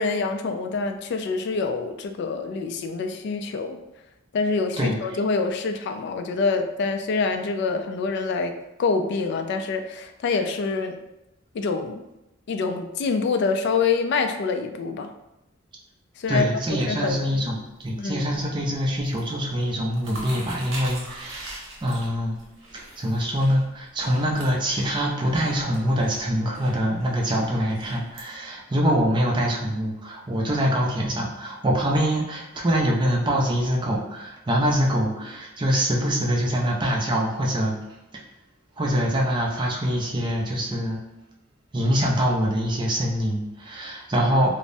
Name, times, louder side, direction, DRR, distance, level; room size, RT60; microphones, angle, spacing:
voice 1, 0.0-3.8 4.3-11.0 11.5-12.0 12.5-15.1 16.2-16.5 16.9-17.4 18.0-18.4, left 4 dB, 60° left, 7 dB, 0.3 m, -26 dB
voice 2, 16.3-22.3 22.7-37.7 38.8-41.0 41.7-44.6, equal, 25° right, -1 dB, 0.5 m, -24 dB
sound 1, 16.7-17.9 18.2-18.6 18.9-19.3 19.6-28.2, right 1 dB, 70° right, 0.8 m, -42 dB
3.3 x 2.0 x 2.6 m, 0.94 s
head